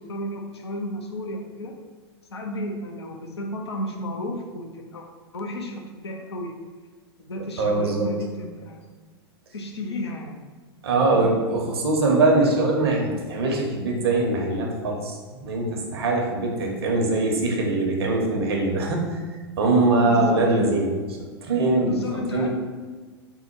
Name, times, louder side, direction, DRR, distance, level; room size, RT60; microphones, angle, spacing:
voice 1, 0.0-1.8 2.3-5.0 5.3-6.5 7.3-8.8 9.5-10.4 11.1-11.4 20.0-20.7 21.8-22.5, left 1 dB, 80° left, 2 dB, 0.7 m, -33 dB
voice 2, 7.6-8.0 10.8-15.1 15.4-19.1 19.6-20.9 21.5-22.5, right 2 dB, 70° right, 1 dB, 0.9 m, -22 dB
3.7 x 2.2 x 4.5 m, 1.4 s
hypercardioid pair, 100°, 14 cm